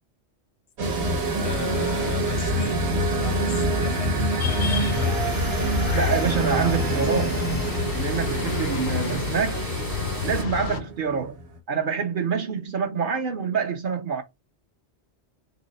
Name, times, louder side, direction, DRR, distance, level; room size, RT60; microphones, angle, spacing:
sound 1, 0.8-10.4, right 4 dB, 25° right, 0.5 m, -34 dB
sound 2, 0.8-11.6, right 1 dB, 80° right, 1.1 m, -27 dB
voice 1, 1.4-2.8 3.1-5.2, left 8 dB, 75° left, 1.1 m, -38 dB
sound 3, 4.4-10.8, left 7 dB, 60° left, 0.6 m, -30 dB
voice 2, 5.9-7.4 7.9-9.7 10.2-11.4 11.7-14.2, right 6 dB, 55° right, 0.7 m, -26 dB
3.8 x 2.0 x 3.9 m
omnidirectional pair, 1.1 m